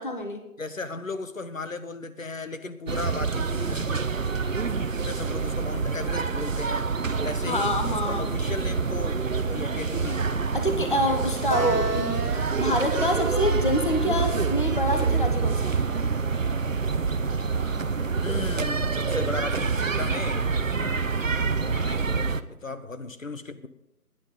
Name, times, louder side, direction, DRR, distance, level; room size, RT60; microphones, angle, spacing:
voice 1, 0.0-0.5 7.5-8.4 10.5-15.8, left 1 dB, 35° left, 0.9 m, -27 dB
voice 2, 0.6-4.0 5.0-6.9 7.2-9.2 9.5-10.3 18.2-20.4 21.5-22.3 22.6-23.7, left 3 dB, 60° left, 1.2 m, -35 dB
sound 1, 2.9-22.4, right 5 dB, 60° right, 0.7 m, -27 dB
sound 2, 5.8-16.2, right 4 dB, 90° right, 1.3 m, -38 dB
18.5 x 10.0 x 3.8 m
figure-of-eight pair, 170°, 46 cm